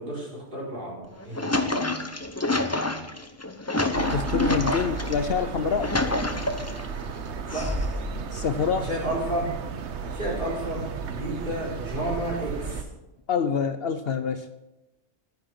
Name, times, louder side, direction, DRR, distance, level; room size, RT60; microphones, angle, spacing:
voice 1, 0.0-1.6 7.5-7.7 8.8-9.5 10.1-12.8, right 1 dB, 45° right, -4 dB, 4.1 m, -31 dB
sound 1, 1.0-5.1 5.6-6.9 7.5-8.2, left 2 dB, 15° left, 0.7 m, -28 dB
sound 2, 3.9-12.8, right 5 dB, 70° right, 1.2 m, -33 dB
voice 2, 4.1-5.9 8.3-8.9 13.3-14.5, left 6 dB, 60° left, 11 dB, 0.8 m, -26 dB
11.0 x 9.9 x 5.9 m, 1.0 s
omnidirectional pair, 1.2 m